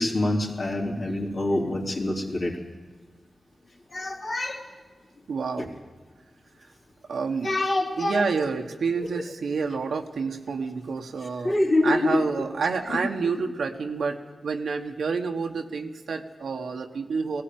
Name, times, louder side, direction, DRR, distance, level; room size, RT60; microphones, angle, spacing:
voice 1, 0.0-2.5 3.9-4.6 5.6-5.7 7.4-8.3 9.0-9.1 11.4-12.2, left 2 dB, 60° left, -1 dB, 3.7 m, -25 dB
voice 2, 5.3-5.7 7.1-7.5 8.0-11.6 11.8-17.4, right 5 dB, 90° right, 3 dB, 1.3 m, -29 dB
17.5 x 17.0 x 9.4 m, 1.4 s
cardioid pair, 60°, 0 cm